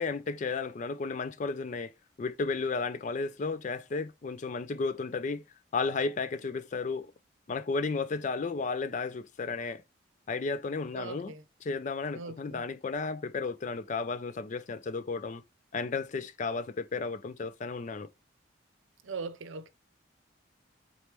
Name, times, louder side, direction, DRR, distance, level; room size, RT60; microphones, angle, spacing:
voice 1, 0.0-1.9 2.2-5.4 5.7-7.1 7.5-9.8 10.3-11.3 11.6-15.4 15.7-18.1, left 4 dB, 40° left, 0.4 m, -33 dB
voice 2, 10.9-11.4 12.1-12.6 19.0-19.7, right 4 dB, 80° right, 0.6 m, -40 dB
4.1 x 3.3 x 2.9 m
head